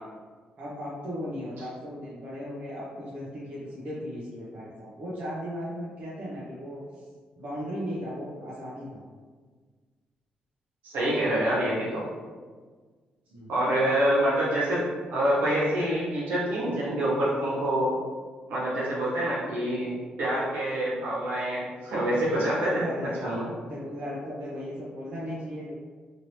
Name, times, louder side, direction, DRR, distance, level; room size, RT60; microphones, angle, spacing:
voice 1, 0.6-7.1 7.4-9.1 13.3-13.5 22.7-23.4 23.6-25.7, equal, 60° right, -8 dB, 0.7 m, -36 dB
voice 2, 10.8-12.1 13.5-14.8 15.1-17.9 18.5-19.9 20.2-23.5, right 1 dB, 85° right, -7 dB, 1.2 m, -26 dB
2.8 x 2.8 x 3.0 m, 1.5 s
cardioid pair, 125°, 3 cm